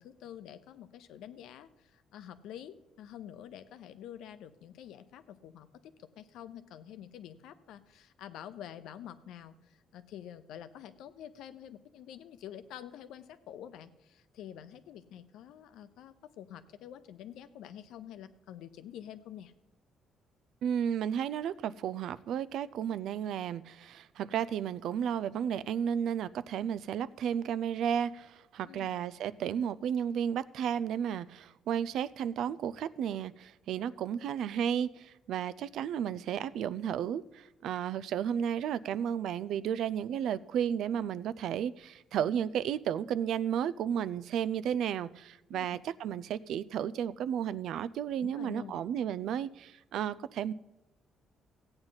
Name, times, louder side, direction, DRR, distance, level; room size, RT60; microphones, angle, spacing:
voice 1, 0.0-19.5 28.6-29.0 45.5-45.7 48.2-48.8, left 10 dB, 90° left, 0.7 m, -48 dB
voice 2, 20.6-50.5, right 9 dB, 70° right, 0.4 m, -33 dB
15.5 x 8.8 x 4.0 m
cardioid pair, 140°, 0 cm